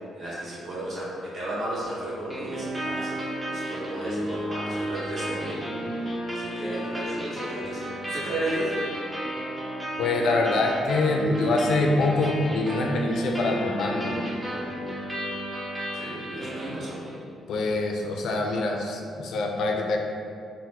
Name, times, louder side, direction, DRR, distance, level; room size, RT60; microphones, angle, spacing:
voice 1, 0.1-3.2 3.5-5.6 6.3-8.7 15.9-17.0, right 1 dB, 45° right, -7 dB, 1.1 m, -34 dB
sound 1, 2.3-17.3, right 1 dB, 10° right, 0.6 m, -32 dB
voice 2, 10.0-14.3 17.5-20.0, left 2 dB, 70° left, 2 dB, 0.3 m, -25 dB
3.7 x 2.0 x 2.8 m, 2.3 s
cardioid pair, 90°, 0 cm